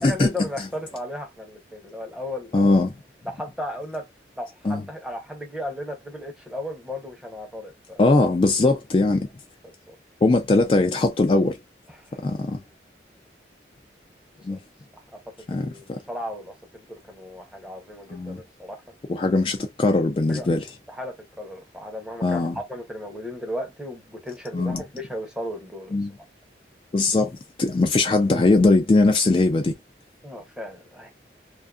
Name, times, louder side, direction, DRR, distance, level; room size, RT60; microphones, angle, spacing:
voice 1, 0.0-2.7 3.3-4.1 4.4-8.0 9.6-10.0 11.9-12.2 14.4-14.6 15.1-15.2 15.5-18.8 20.3-20.5 20.9-25.9 30.2-31.1, left 1 dB, 5° right, 0.7 m, -35 dB
voice 2, 2.5-2.9 4.6-4.8 8.0-9.3 10.2-11.6 12.2-12.6 14.4-14.6 15.5-16.0 18.1-18.4 19.1-20.7 22.2-22.6 24.5-24.8 25.9-26.1 26.9-29.7, left 2 dB, 30° left, 0.3 m, -20 dB
2.5 x 2.4 x 2.3 m
head